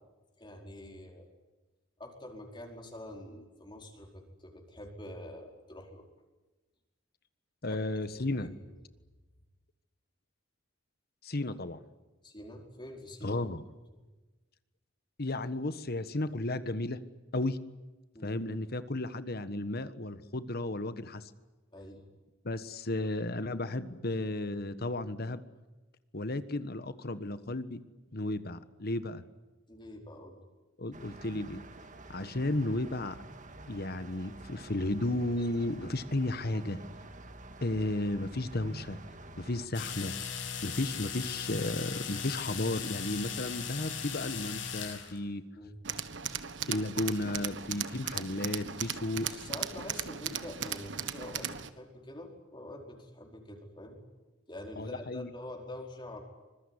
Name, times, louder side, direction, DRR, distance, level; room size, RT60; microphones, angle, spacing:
voice 1, 0.4-1.3 2.0-6.1 7.7-7.8 8.1-8.7 12.2-13.4 13.9-14.0 18.1-18.4 21.7-22.0 29.7-30.4 32.2-32.3 45.5-45.7 49.1-54.0 54.5-56.2, left 1 dB, 25° left, 1 dB, 4.8 m, -46 dB
voice 2, 7.6-8.5 11.2-11.8 13.2-13.6 15.2-17.0 17.3-17.6 18.2-21.3 22.4-25.4 26.1-27.8 28.1-29.2 30.8-31.6 32.1-33.1 33.7-36.8 37.6-39.0 39.4-40.1 40.6-45.4 46.7-49.3 54.8-55.3, left 2 dB, 50° left, 12 dB, 1.4 m, -33 dB
sound 1, 30.9-39.7, right 2 dB, 40° right, 2.0 m, -49 dB
sound 2, 39.7-45.2, left 6 dB, 75° left, 7.9 m, -38 dB
Tools, 45.8-51.7, right 8 dB, 65° right, 1.5 m, -37 dB
25.5 x 22.0 x 9.9 m, 1.2 s
head